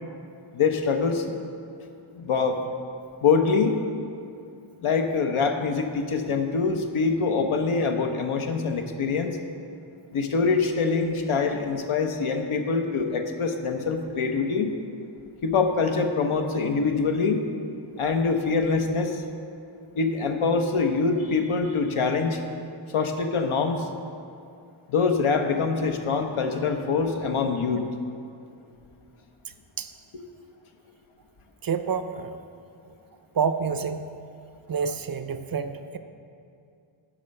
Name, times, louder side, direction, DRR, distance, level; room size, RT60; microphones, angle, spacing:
voice 1, 0.5-1.3 2.2-2.6 3.2-3.8 4.8-9.4 10.1-14.7 15.4-17.4 18.0-19.2 20.0-22.4 22.9-23.9 24.9-27.8, left 4 dB, 80° left, 5 dB, 0.9 m, -24 dB
voice 2, 31.6-32.4 32.8-32.9 33.3-34.1 34.7-36.0, right 6 dB, 45° right, 9 dB, 0.5 m, -28 dB
10.0 x 4.3 x 6.4 m, 2.5 s
wide cardioid pair, 90°, 50 cm